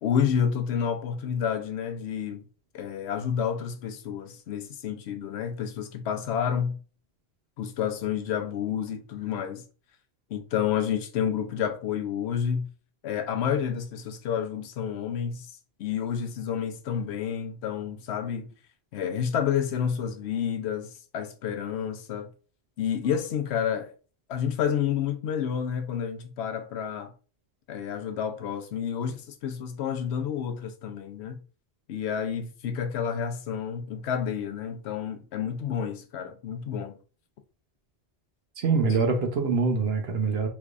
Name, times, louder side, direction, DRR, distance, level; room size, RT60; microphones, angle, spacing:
voice 1, 0.0-2.4 2.7-6.8 7.6-9.6 10.3-12.7 13.0-15.5 15.8-18.5 18.9-22.3 22.8-23.9 24.3-27.1 27.7-31.4 31.9-37.0, left 8 dB, 85° left, 0.9 m, -29 dB
voice 2, 38.6-40.5, right 4 dB, 70° right, 1.0 m, -24 dB
3.4 x 3.1 x 2.4 m
omnidirectional pair, 1.1 m